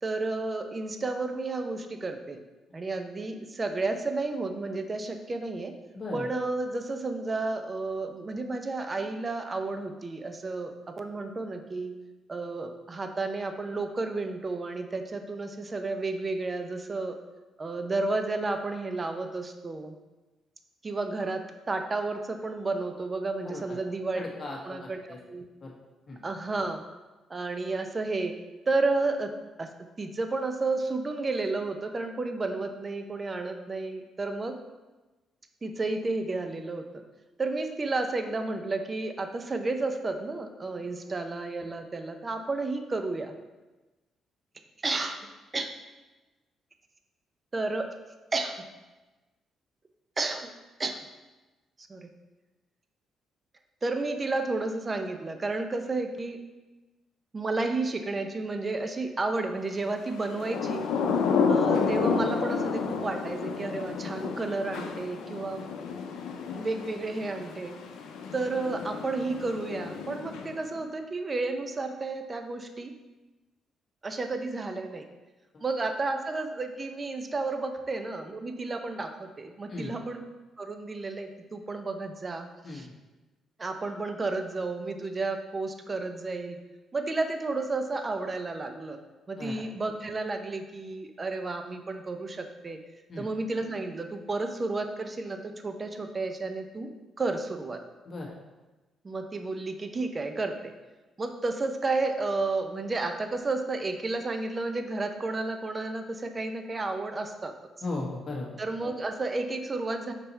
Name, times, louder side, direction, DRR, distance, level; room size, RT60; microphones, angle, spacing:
voice 1, 0.0-2.4 2.7-5.7 6.1-11.9 12.3-17.2 17.6-19.9 20.8-24.2 24.6-25.5 26.2-26.8 27.3-28.3 28.7-29.3 29.6-29.7 30.0-34.6 35.6-37.0 37.4-43.3 44.8-45.3 45.5-45.7 47.5-47.9 48.3-48.7 50.2-50.5 50.8-51.0 51.9-52.1 53.8-56.4 57.3-60.9 61.5-65.7 66.6-67.8 68.3-72.9 74.0-75.1 75.6-80.2 80.6-82.9 83.6-86.6 86.9-89.0 89.3-92.8 93.2-96.9 97.2-97.8 99.0-100.7 101.2-107.5 108.6-110.1, right 3 dB, 30° right, 6 dB, 0.7 m, -32 dB
voice 2, 5.9-6.3 23.4-23.8 24.2-25.2 25.6-25.7 26.1-26.2 40.8-40.9 79.7-79.9 82.6-82.9 89.4-89.6 93.1-93.3 98.0-98.3 107.8-108.5, left 2 dB, 40° left, -2 dB, 1.6 m, -37 dB
Thunder / Rain, 60.2-70.8, left 5 dB, 85° left, 0.6 m, -30 dB
5.6 x 4.1 x 4.4 m, 1.1 s
cardioid pair, 90°, 0 cm